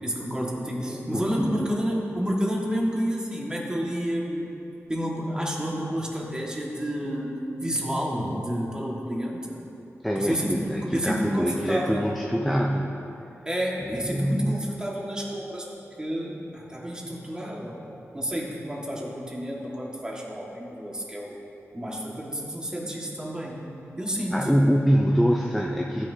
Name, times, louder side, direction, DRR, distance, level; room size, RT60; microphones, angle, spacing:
voice 1, 0.0-4.6 4.9-7.4 7.6-9.6 10.2-12.0 13.5-15.7 16.0-17.8 18.1-21.4 21.7-23.6 24.0-24.5, equal, 15° right, -3 dB, 1.8 m, -30 dB
voice 2, 0.9-1.7 10.0-12.9 13.8-14.6 24.3-26.0, equal, ahead, -1 dB, 0.6 m, -25 dB
16.0 x 9.6 x 2.8 m, 3.0 s
wide cardioid pair, 115°, 5 cm